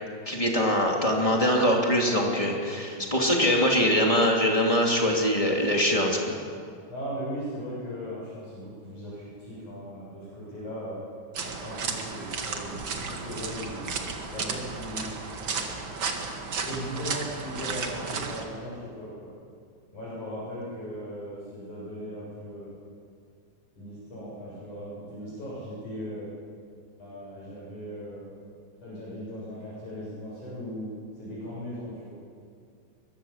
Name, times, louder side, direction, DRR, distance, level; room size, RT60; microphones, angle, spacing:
voice 1, 0.3-6.4, equal, 10° left, -1 dB, 1.7 m, -23 dB
voice 2, 3.0-3.3 6.9-11.0 11.4-13.9 14.3-15.1 15.8-15.9 16.6-19.3 19.9-22.8 23.8-26.3 27.0-28.4 28.8-32.1, equal, 40° left, -7 dB, 8.0 m, -38 dB
sound 1, 11.3-18.5, right 4 dB, 75° right, 1.1 m, -33 dB
23.0 x 22.0 x 7.4 m, 2.3 s
omnidirectional pair, 5.3 m